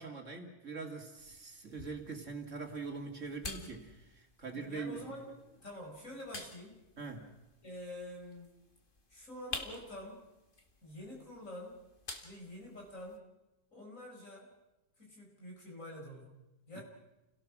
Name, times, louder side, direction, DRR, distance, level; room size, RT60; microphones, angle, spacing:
voice 1, 0.0-5.0 7.0-7.3 16.7-16.8, right 4 dB, 55° right, 3 dB, 2.7 m, -43 dB
sound 1, 1.2-13.2, left 2 dB, 35° left, 2.1 m, -50 dB
voice 2, 4.5-6.8 7.6-8.5 9.1-10.3 10.8-11.8 12.2-13.2 13.7-14.5 15.0-16.4 16.7-16.8, left 1 dB, 60° left, 0 dB, 5.4 m, -47 dB
29.5 x 17.5 x 6.1 m, 0.98 s
omnidirectional pair, 1.6 m